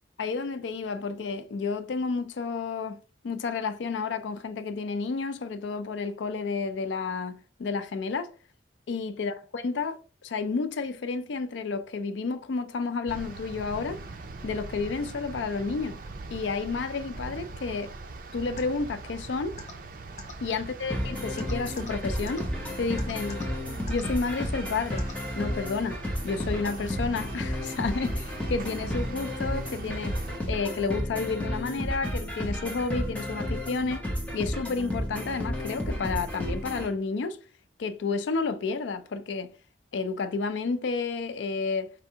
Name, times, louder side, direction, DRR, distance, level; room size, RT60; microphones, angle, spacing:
voice 1, 0.2-3.0 3.2-8.3 8.9-14.0 14.4-16.0 16.3-17.9 18.3-19.6 20.4-22.5 22.8-23.5 23.9-25.1 25.4-34.1 34.3-37.4 37.8-39.5 39.9-41.9, left 4 dB, 80° left, 0.4 m, -31 dB
sound 1, 13.1-30.4, right 3 dB, 50° right, 0.5 m, -41 dB
sound 2, 18.6-18.7 19.6-19.7 20.2-20.3 21.4-21.9 22.3-22.4 23.0-23.4 23.9-24.0 25.0-25.1, left 4 dB, 40° left, 0.8 m, -41 dB
sound 3, 20.9-36.9, equal, 10° left, 0.8 m, -32 dB
5.0 x 3.4 x 2.8 m
head